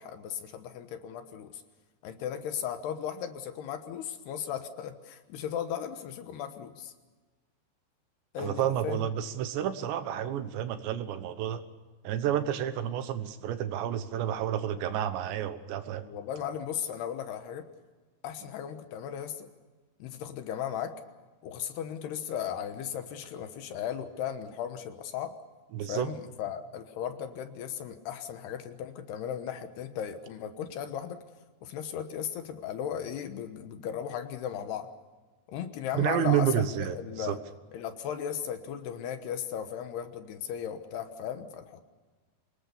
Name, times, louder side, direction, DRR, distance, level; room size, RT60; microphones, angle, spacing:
voice 1, 0.0-1.6 2.0-6.9 8.3-9.0 16.0-17.7 18.2-19.5 20.0-20.9 21.4-25.3 25.9-31.2 31.6-34.9 35.5-37.4 37.7-41.8, left 9 dB, 70° left, 8 dB, 3.0 m, -36 dB
voice 2, 8.4-11.6 12.0-16.1 25.7-26.1 35.9-37.4, right 10 dB, 75° right, 10 dB, 3.3 m, -30 dB
26.5 x 20.0 x 6.8 m, 1.3 s
omnidirectional pair, 5.3 m